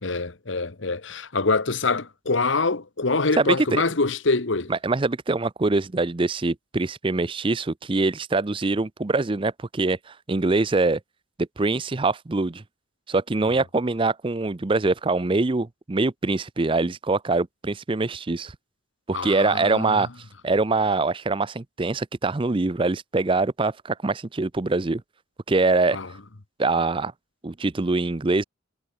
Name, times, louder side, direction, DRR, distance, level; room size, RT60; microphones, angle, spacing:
voice 1, 0.0-4.7 19.1-20.1 25.9-26.1, left 3 dB, 70° left, 1.3 m, -25 dB
voice 2, 3.4-3.8 4.7-11.0 11.4-12.6 13.1-18.5 19.1-20.1 20.4-25.0 25.5-26.0 26.6-27.1 27.4-28.4, right 3 dB, 25° right, 0.5 m, -24 dB
head